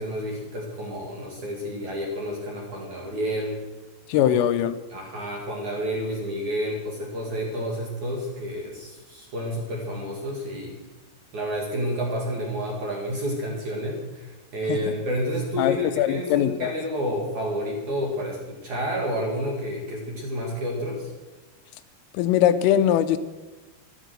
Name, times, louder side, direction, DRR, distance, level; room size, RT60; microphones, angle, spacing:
voice 1, 0.0-3.6 4.2-4.4 4.9-10.8 11.3-21.1, equal, 50° right, -1 dB, 2.5 m, -30 dB
voice 2, 4.1-4.8 14.7-14.8 15.6-16.7 22.1-23.2, left 11 dB, 85° left, 11 dB, 3.1 m, -21 dB
14.5 x 12.0 x 6.3 m, 1.2 s
omnidirectional pair, 5.9 m